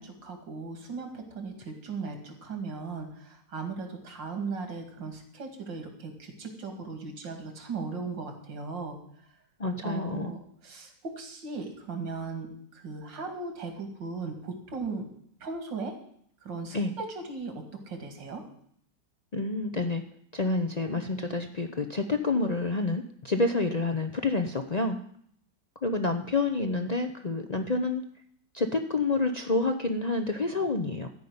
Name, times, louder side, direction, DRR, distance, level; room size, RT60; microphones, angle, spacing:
voice 1, 0.0-9.0 9.8-12.5 12.7-15.1 15.4-16.0 16.4-18.4, right 4 dB, 85° right, 5 dB, 2.9 m, -37 dB
voice 2, 9.6-10.3 16.7-16.9 19.3-20.0 20.3-25.0 25.8-28.0 28.5-31.1, left 3 dB, 60° left, 5 dB, 0.4 m, -28 dB
14.0 x 5.5 x 9.5 m, 0.65 s
omnidirectional pair, 1.9 m